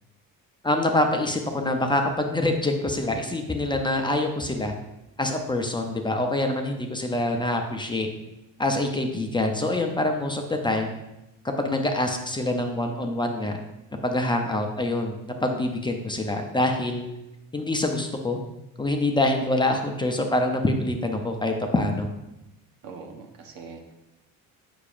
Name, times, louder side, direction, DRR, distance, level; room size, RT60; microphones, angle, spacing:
voice 1, 0.6-4.7 5.2-8.1 8.6-10.9 11.6-13.6 14.0-15.2 15.4-17.1 17.5-18.4 18.8-22.1, left 1 dB, 15° left, 3 dB, 0.5 m, -25 dB
voice 2, 22.8-23.9, right 4 dB, 80° right, 3 dB, 1.0 m, -42 dB
6.7 x 6.0 x 2.5 m, 0.93 s
cardioid pair, 115°, 34 cm